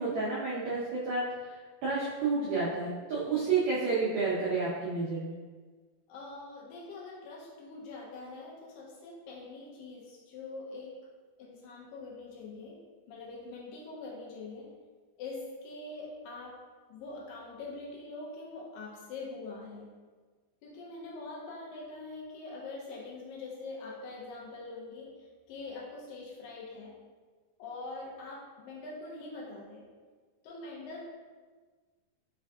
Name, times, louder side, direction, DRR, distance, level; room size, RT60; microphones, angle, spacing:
voice 1, 0.0-1.5 1.8-5.3, right 4 dB, 80° right, -7 dB, 1.6 m, -30 dB
voice 2, 6.1-11.0 11.4-12.8 13.1-14.7 15.2-16.6 16.9-19.9 20.6-26.9 27.6-29.9 30.4-31.1, left 3 dB, 80° left, -3 dB, 2.3 m, -44 dB
5.6 x 3.4 x 2.3 m, 1.4 s
omnidirectional pair, 4.1 m